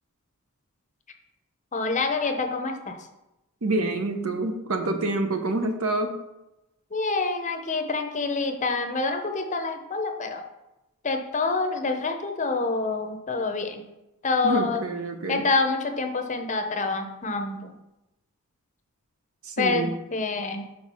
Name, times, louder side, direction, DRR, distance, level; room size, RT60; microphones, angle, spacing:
voice 1, 1.7-3.0 6.9-10.4 11.0-13.8 14.2-14.8 15.3-17.7 19.6-20.7, left 3 dB, 35° left, 5 dB, 0.7 m, -27 dB
voice 2, 3.6-6.2 14.4-15.5 19.4-20.0, right 2 dB, 65° right, 6 dB, 0.8 m, -27 dB
4.7 x 4.7 x 5.4 m, 0.93 s
head